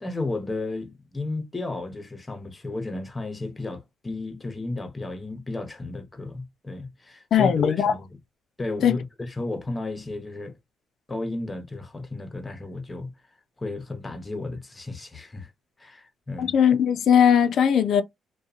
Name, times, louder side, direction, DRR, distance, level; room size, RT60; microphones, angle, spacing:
voice 1, 0.0-8.1 8.6-10.6 11.1-13.1 13.6-15.5 15.8-16.5, left 2 dB, 20° left, 0.7 m, -33 dB
voice 2, 7.3-7.9 8.8-9.0 16.4-18.0, left 8 dB, 65° left, 0.5 m, -19 dB
2.7 x 2.2 x 2.4 m
cardioid pair, 90°, 0 cm